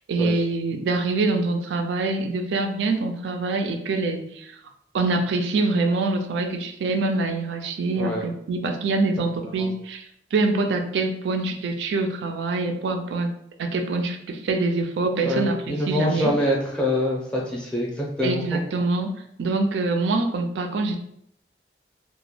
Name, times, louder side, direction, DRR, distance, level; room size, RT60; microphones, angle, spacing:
voice 1, 0.0-4.6 4.9-13.3 13.6-16.3 18.2-19.1 19.4-21.0, right 3 dB, 85° right, 5 dB, 0.3 m, -25 dB
voice 2, 15.2-18.6, left 1 dB, 5° left, -4 dB, 0.5 m, -25 dB
2.2 x 2.0 x 3.0 m, 0.72 s
head